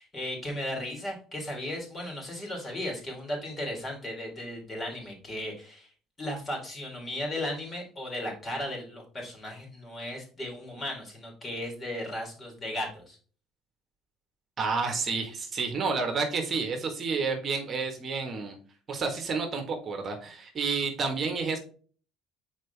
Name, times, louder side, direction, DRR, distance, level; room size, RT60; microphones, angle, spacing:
voice 1, 0.0-5.9 6.2-13.2, left 1 dB, 25° left, 0 dB, 3.4 m, -36 dB
voice 2, 14.6-18.5 18.9-21.6, right 4 dB, 35° right, 4 dB, 1.6 m, -30 dB
6.5 x 4.8 x 3.4 m, 0.41 s
supercardioid pair, 105°, 0 cm